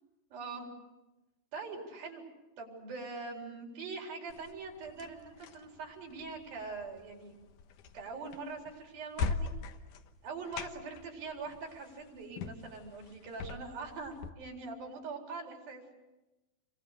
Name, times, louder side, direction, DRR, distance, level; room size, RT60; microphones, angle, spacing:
voice 1, 0.3-0.7 1.5-2.2 2.6-7.4 7.9-9.5 10.2-15.8, right 4 dB, 80° right, 1 dB, 6.0 m, -43 dB
sound 1, 4.3-14.3, left 5 dB, 70° left, 2.6 m, -42 dB
28.5 x 24.0 x 6.8 m, 1.0 s
omnidirectional pair, 4.1 m